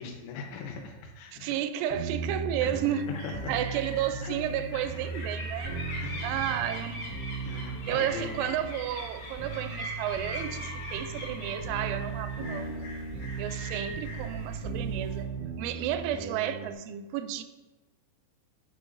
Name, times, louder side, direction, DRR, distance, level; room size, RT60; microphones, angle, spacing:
voice 1, 0.0-1.5 2.6-2.7 3.1-3.3 3.7-3.8 4.2-4.4 4.7-5.1 5.5-5.6 6.0-6.3 7.5-8.5, left 5 dB, 90° left, 3 dB, 3.5 m, -40 dB
voice 2, 1.3-3.1 3.5-5.8 6.2-7.0 7.9-12.9 13.4-15.3 15.6-17.4, right 11 dB, 85° right, 10 dB, 3.0 m, -32 dB
sound 1, 1.9-16.7, right 4 dB, 20° left, 0.9 m, -37 dB
sound 2, 2.5-16.0, right 8 dB, 40° right, 0.5 m, -49 dB
sound 3, 2.7-15.2, left 1 dB, 60° left, 3.6 m, -42 dB
12.5 x 6.1 x 2.6 m, 1.2 s
omnidirectional pair, 5.4 m